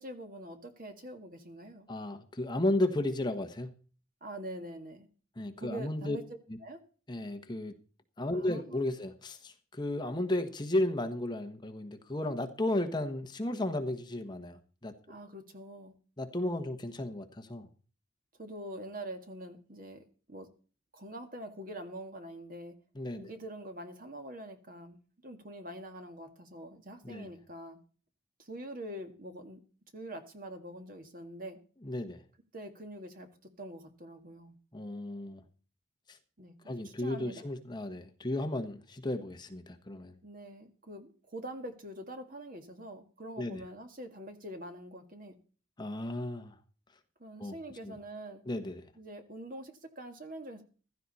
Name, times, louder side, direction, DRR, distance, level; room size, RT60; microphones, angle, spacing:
voice 1, 0.0-1.9 4.2-5.1 5.6-6.2 6.6-6.8 8.3-8.9 15.1-16.0 18.4-20.5 20.9-22.8 23.2-25.0 25.2-27.8 28.4-29.6 29.9-31.6 32.5-33.3 33.6-34.6 36.4-37.4 40.2-45.4 47.2-48.4 49.0-50.6, right 1 dB, 45° right, 6 dB, 1.9 m, -44 dB
voice 2, 1.9-3.7 5.4-6.2 6.5-6.6 7.1-7.8 8.2-14.9 16.2-17.7 22.9-23.3 27.0-27.3 31.8-32.2 34.7-35.4 36.1-36.2 36.7-40.1 43.4-43.6 45.8-46.5 47.4-47.6 47.8-48.0 48.5-48.8, left 1 dB, 20° left, 6 dB, 1.2 m, -34 dB
15.5 x 13.0 x 4.2 m, 0.39 s
head